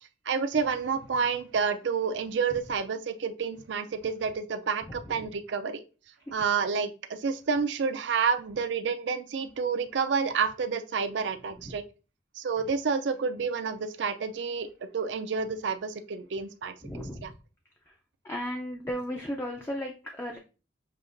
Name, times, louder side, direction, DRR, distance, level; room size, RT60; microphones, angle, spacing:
voice 1, 0.3-5.8 6.3-11.8 12.3-14.7 14.9-17.3, right 5 dB, 80° right, 8 dB, 0.4 m, -29 dB
voice 2, 4.9-5.3 11.6-11.7 16.8-17.3 18.2-20.4, equal, 15° left, 1 dB, 0.4 m, -35 dB
6.6 x 2.8 x 2.5 m, 0.34 s
head